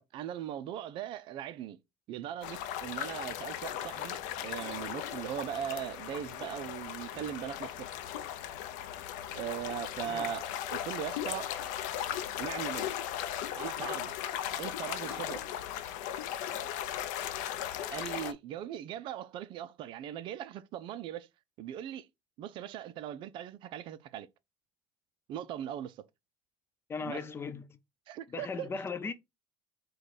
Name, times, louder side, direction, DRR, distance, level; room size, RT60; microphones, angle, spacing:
voice 1, 0.1-1.8 2.1-8.0 9.3-11.5 12.4-12.9 13.5-14.1 14.6-15.4 17.9-21.3 21.6-22.1 22.4-24.3 25.3-26.0 27.0-27.2 28.1-28.7, right 10 dB, 60° right, 0.5 m, -39 dB
sound 1, 2.4-18.3, left 11 dB, 85° left, 0.6 m, -37 dB
voice 2, 26.9-27.8 28.3-29.1, left 5 dB, 25° left, 0.5 m, -38 dB
4.7 x 2.3 x 4.1 m
supercardioid pair, 110°, 10 cm